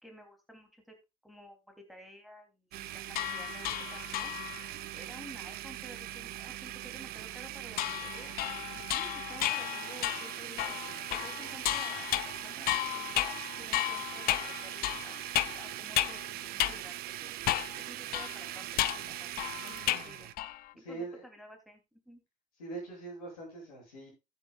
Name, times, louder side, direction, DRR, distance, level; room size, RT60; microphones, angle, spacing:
voice 1, 0.0-0.9 1.2-4.3 4.9-8.3 8.6-10.8 11.1-15.1 15.5-17.3 17.8-20.3 20.7-22.2, equal, ahead, 3 dB, 3.1 m, -52 dB
Domestic sounds home sounds, 2.7-20.3, right 15 dB, 60° right, 0.7 m, -41 dB
sound 1, 3.1-4.7 7.8-16.3 16.6-16.8 17.5-17.8 18.1-20.1 20.4-20.7, left 15 dB, 55° left, 0.6 m, -33 dB
voice 2, 20.8-21.2 22.6-24.1, right 3 dB, 85° left, -3 dB, 8.0 m, -42 dB
14.5 x 9.2 x 2.4 m, 0.24 s
hypercardioid pair, 60°, 18 cm